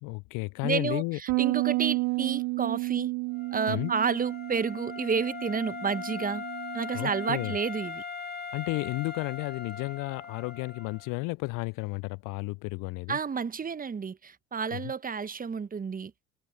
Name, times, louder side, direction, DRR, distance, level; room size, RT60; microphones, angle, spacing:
voice 1, 0.0-1.2 3.7-3.9 6.9-7.5 8.5-13.2 14.7-14.9, left 26 dB, 50° left, 0.7 m, -32 dB
voice 2, 0.6-3.1 3.5-6.4 6.7-8.0 13.1-16.1, right 6 dB, 20° right, 1.2 m, -30 dB
Bass guitar, 1.3-7.5, right 26 dB, 45° right, 0.5 m, -32 dB
Wind instrument woodwind instrument, 3.3-11.1, left 6 dB, 25° left, 2.4 m, -40 dB
figure-of-eight pair, 70°, 41 cm